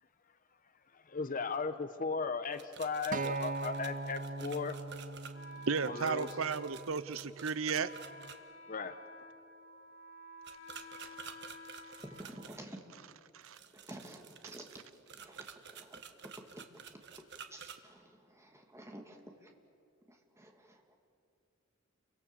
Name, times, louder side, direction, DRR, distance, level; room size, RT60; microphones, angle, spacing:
voice 1, 0.9-4.8 5.5-6.3 8.7-9.0, left 4 dB, 40° left, 11 dB, 0.9 m, -37 dB
sound 1, 2.5-8.4 10.4-12.6 13.4-17.8, right 7 dB, 55° right, 1.4 m, -51 dB
Acoustic guitar, 3.1-7.4 8.2-8.3, right 3 dB, 40° right, 0.6 m, -41 dB
Wind instrument woodwind instrument, 5.3-13.1, equal, 70° left, 2.2 m, -52 dB
voice 2, 5.7-7.9 11.0-11.1 13.3-13.6, right 5 dB, 75° right, 15 dB, 0.7 m, -34 dB
voice 3, 12.0-12.8 13.7-14.7 15.1-16.0 16.7-16.8 17.5-19.5 20.1-20.9, right 1 dB, 15° right, 2 dB, 2.6 m, -51 dB
30.0 x 24.0 x 7.2 m, 2.5 s
head